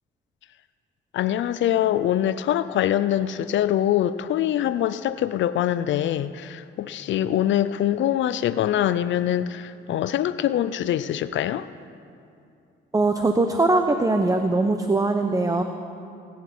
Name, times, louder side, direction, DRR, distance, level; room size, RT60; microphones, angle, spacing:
voice 1, 1.1-11.7, left 11 dB, 70° left, 14 dB, 0.5 m, -24 dB
voice 2, 12.9-15.6, right 2 dB, 15° right, 6 dB, 0.8 m, -21 dB
22.0 x 10.5 x 6.0 m, 2.5 s
cardioid pair, 90°, 20 cm